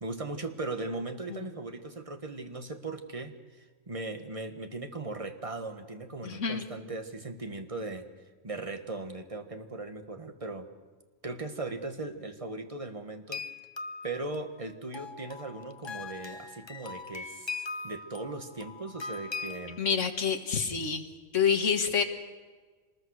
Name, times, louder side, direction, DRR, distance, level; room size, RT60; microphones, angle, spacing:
voice 1, 0.0-8.0 8.4-10.7 11.2-13.5 14.0-19.8, right 2 dB, 25° right, 6 dB, 1.5 m, -38 dB
voice 2, 6.2-6.7 19.8-21.1 21.3-22.0, left 6 dB, 60° left, 5 dB, 1.9 m, -27 dB
sound 1, 13.3-19.8, left 4 dB, 25° left, 0.6 m, -41 dB
26.0 x 20.5 x 6.5 m, 1.4 s
omnidirectional pair, 1.5 m